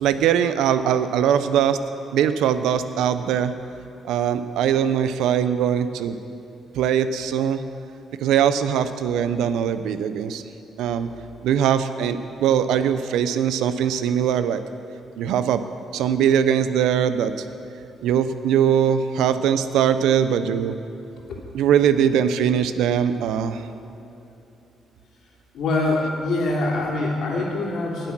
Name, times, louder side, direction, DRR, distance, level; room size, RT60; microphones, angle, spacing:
voice 1, 0.0-1.8 2.1-3.5 4.0-6.2 6.7-7.6 8.2-10.4 10.8-11.1 11.4-14.6 15.2-15.6 15.9-17.3 18.0-20.7 21.5-23.6, right 9 dB, 85° right, 11 dB, 0.6 m, -21 dB
voice 2, 25.5-28.1, left 2 dB, 70° left, -2 dB, 3.3 m, -24 dB
19.5 x 7.6 x 6.1 m, 2.9 s
cardioid pair, 90°, 0 cm